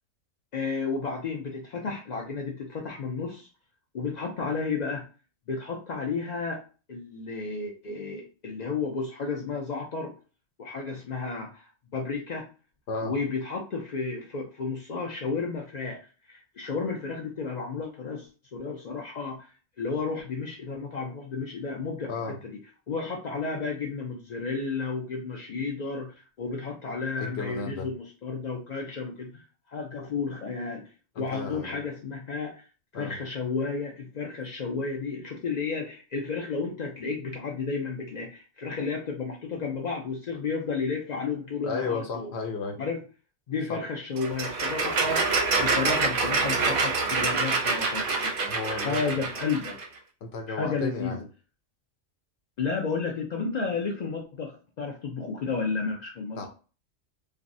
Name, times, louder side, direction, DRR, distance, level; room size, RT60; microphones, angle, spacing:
voice 1, 0.5-3.5 3.9-5.1 5.5-6.6 6.9-10.1 10.6-12.5 13.0-16.0 16.3-19.5 19.8-22.6 22.9-30.9 31.2-32.6 33.0-42.3 42.8-43.0 43.5-48.3 48.7-49.8 50.5-51.1 52.6-56.5, left 4 dB, 85° left, 0 dB, 0.3 m, -32 dB
voice 2, 27.2-27.9 31.2-31.8 32.9-33.2 41.6-42.8 43.7-43.8 48.5-49.0 50.2-51.2 56.4-56.5, left 4 dB, 65° left, 3 dB, 0.8 m, -33 dB
hand mower starts rolling, 44.2-49.9, right 4 dB, 55° right, 0.6 m, -26 dB
3.3 x 2.0 x 2.6 m, 0.35 s
omnidirectional pair, 1.3 m